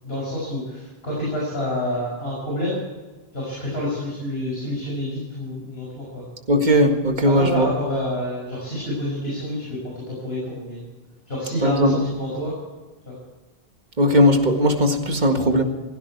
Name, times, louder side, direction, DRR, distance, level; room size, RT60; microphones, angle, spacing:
voice 1, 0.0-2.8 3.3-6.3 7.2-10.9 11.3-12.5 13.1-13.2, left 1 dB, 75° left, -5 dB, 6.3 m, -28 dB
voice 2, 6.5-7.7 11.6-12.0 14.0-15.6, equal, 45° right, 4 dB, 2.0 m, -18 dB
16.5 x 16.5 x 4.6 m, 1.3 s
omnidirectional pair, 1.0 m